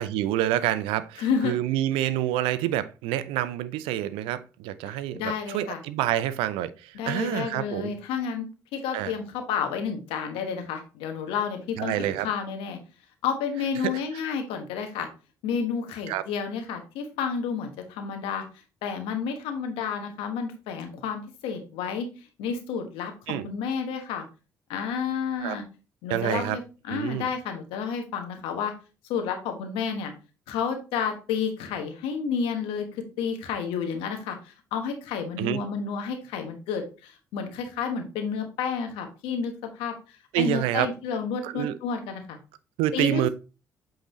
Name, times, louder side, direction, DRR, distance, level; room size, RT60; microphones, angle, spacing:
voice 1, 0.0-7.9 8.9-9.1 11.8-12.3 13.8-13.9 16.1-16.2 23.3-23.5 25.4-25.6 26.1-26.6 26.9-27.3 35.4-35.6 40.3-40.9 41.4-41.8 42.8-43.3, right 13 dB, 80° right, 0.4 m, -27 dB
voice 2, 1.2-1.6 4.8-5.8 6.9-12.8 13.2-15.1 15.4-18.4 18.8-22.1 22.4-24.2 24.7-25.6 26.0-26.6 26.9-28.7 29.1-30.1 30.5-40.0 40.3-42.4 42.9-43.3, left 6 dB, 80° left, 1.2 m, -30 dB
8.2 x 3.7 x 3.1 m
hypercardioid pair, 50°, 9 cm